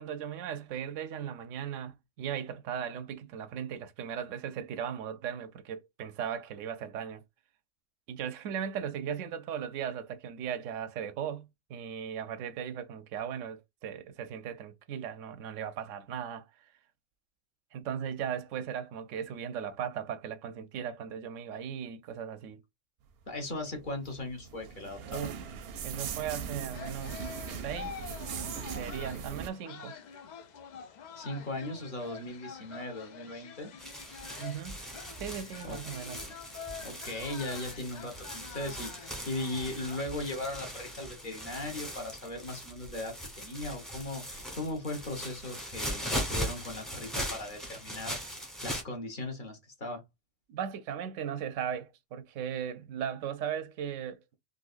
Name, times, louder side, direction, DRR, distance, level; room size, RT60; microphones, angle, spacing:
voice 1, 0.0-7.2 8.1-16.5 17.7-22.6 25.1-25.4 25.8-27.2 27.6-28.0 28.7-29.9 34.4-34.8 35.2-36.2 50.5-54.2, right 8 dB, 90° right, 0.9 m, -37 dB
voice 2, 23.3-25.3 31.1-33.7 35.6-35.8 36.8-50.0, left 2 dB, 45° left, 1.2 m, -38 dB
sound 1, 23.6-29.5, right 7 dB, 65° right, 0.7 m, -40 dB
sound 2, 26.7-40.6, left 6 dB, 70° left, 0.4 m, -47 dB
sound 3, 33.8-48.8, equal, ahead, 0.8 m, -39 dB
3.9 x 2.6 x 2.4 m
omnidirectional pair, 1.3 m